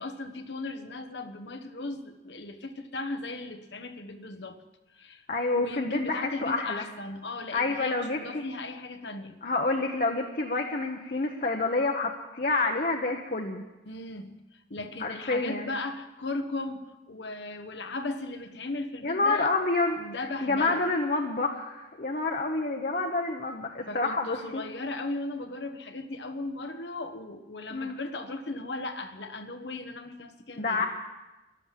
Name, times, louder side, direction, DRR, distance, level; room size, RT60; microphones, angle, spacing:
voice 1, 0.0-4.6 4.9-5.2 5.6-9.4 13.8-19.6 19.9-20.9 23.9-30.9, left 2 dB, 80° left, 8 dB, 1.2 m, -37 dB
voice 2, 5.3-6.8 7.5-8.4 9.4-13.6 15.0-15.7 19.0-20.0 20.4-24.6 27.7-28.0 30.6-30.9, left 3 dB, 50° left, 2 dB, 1.1 m, -28 dB
14.0 x 12.0 x 7.5 m, 1.1 s
head